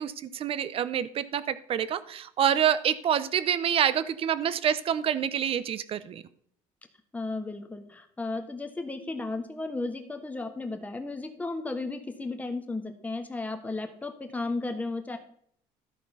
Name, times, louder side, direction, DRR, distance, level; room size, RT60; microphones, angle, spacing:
voice 1, 0.0-6.2, right 9 dB, 45° right, 15 dB, 0.6 m, -27 dB
voice 2, 7.1-15.2, left 3 dB, 10° left, 5 dB, 1.3 m, -34 dB
13.0 x 4.3 x 5.5 m, 0.65 s
cardioid pair, 110°, 13 cm